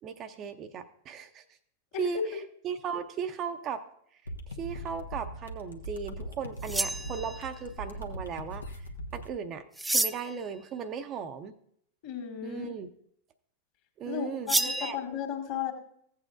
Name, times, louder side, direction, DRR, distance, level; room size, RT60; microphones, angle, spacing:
voice 1, 0.0-1.4 2.0-2.2 2.6-3.8 4.1-4.2 4.5-11.5 12.4-12.9 14.0-15.0, right 7 dB, 30° right, 8 dB, 0.7 m, -37 dB
sound 1, 4.3-9.3, equal, 75° left, 1.0 m, -40 dB
sound 2, 6.6-7.6 9.8-10.4 14.5-14.9, right 2 dB, 5° right, 0.3 m, -29 dB
voice 2, 12.0-12.7 14.1-15.7, left 9 dB, 45° left, 3 dB, 2.1 m, -35 dB
15.5 x 8.3 x 2.5 m, 0.68 s
figure-of-eight pair, 90°, 0 cm